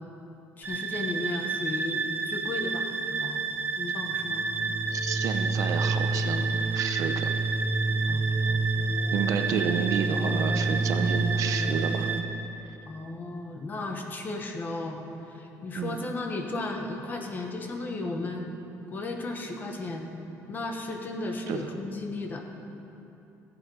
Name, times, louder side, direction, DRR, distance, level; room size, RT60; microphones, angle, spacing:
voice 1, 0.6-3.4 3.8-4.5 8.0-8.2 8.5-8.6 9.6-9.7 12.9-18.5 18.9-20.1 20.5-22.4, left 2 dB, 30° left, 3 dB, 1.3 m, -35 dB
sound 1, 0.6-12.2, right 3 dB, 30° right, 1.0 m, -28 dB
voice 2, 4.9-7.3 9.1-12.1 12.6-12.7 15.8-16.0 21.5-21.7, right 7 dB, 65° right, 7 dB, 0.8 m, -30 dB
15.0 x 8.2 x 5.6 m, 2.9 s
cardioid pair, 135°, 6 cm